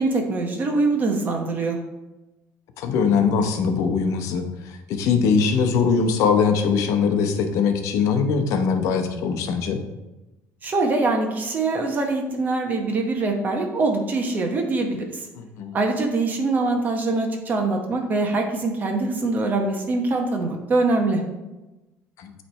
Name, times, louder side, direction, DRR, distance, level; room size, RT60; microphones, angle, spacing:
voice 1, 0.0-1.8 10.6-15.0 15.7-21.2, right 3 dB, 30° right, 2 dB, 1.0 m, -23 dB
voice 2, 2.8-9.8 15.3-15.8 22.2-22.3, left 5 dB, 70° left, 7 dB, 0.8 m, -21 dB
8.5 x 3.3 x 4.3 m, 1.1 s
cardioid pair, 135°, 6 cm